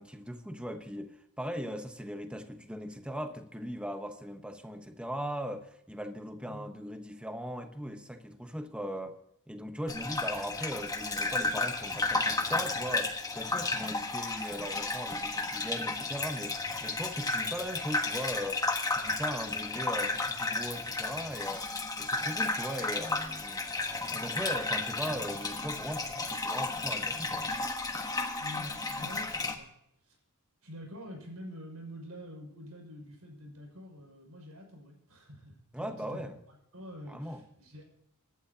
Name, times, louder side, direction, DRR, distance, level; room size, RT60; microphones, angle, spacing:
voice 1, 0.0-9.2 9.5-23.6 24.1-27.4 35.7-36.4 37.1-37.4, equal, 5° right, 1.1 m, -39 dB
Gurgling / Bathtub (filling or washing), 9.9-29.5, left 3 dB, 15° left, 1.3 m, -33 dB
voice 2, 28.4-29.7 30.0-30.2 30.6-36.3 36.7-37.8, equal, 80° right, 6.3 m, -46 dB
25.5 x 11.5 x 2.9 m
head